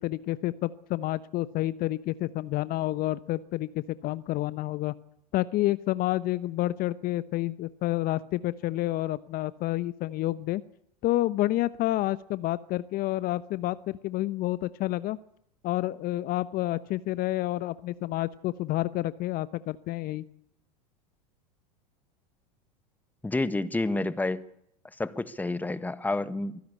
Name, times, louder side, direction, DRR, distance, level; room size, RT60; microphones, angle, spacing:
voice 1, 0.0-4.9 5.3-10.6 11.0-15.2 15.6-20.2, left 16 dB, 45° left, 16 dB, 1.0 m, -29 dB
voice 2, 23.2-24.4 25.0-26.6, left 2 dB, 10° left, 15 dB, 1.4 m, -29 dB
24.0 x 16.5 x 8.4 m, 0.73 s
hypercardioid pair, 90°, 21 cm